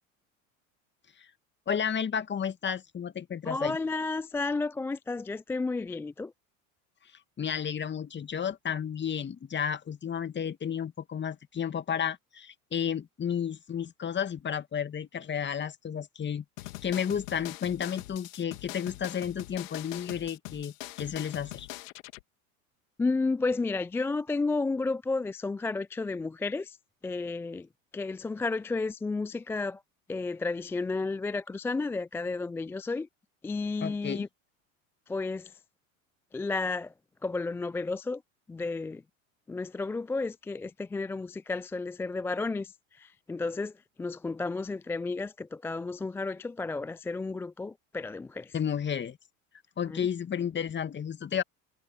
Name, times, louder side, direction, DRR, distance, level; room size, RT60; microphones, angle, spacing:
voice 1, 1.7-3.8 7.4-16.4 16.8-21.7 33.8-34.3 48.5-49.2 49.8-51.4, left 8 dB, 25° left, 2.3 m, -32 dB
voice 2, 3.5-6.3 23.0-26.8 27.0-27.7 27.9-29.8 30.1-33.1 33.4-34.3 35.1-35.5 36.3-36.9 37.2-38.2 38.5-39.0 39.5-42.7 43.0-43.7 44.0-48.5 49.9-50.1, left 3 dB, 5° left, 0.3 m, -32 dB
sound 1, 16.6-22.2, left 19 dB, 65° left, 2.5 m, -42 dB
hypercardioid pair, 80°, 42 cm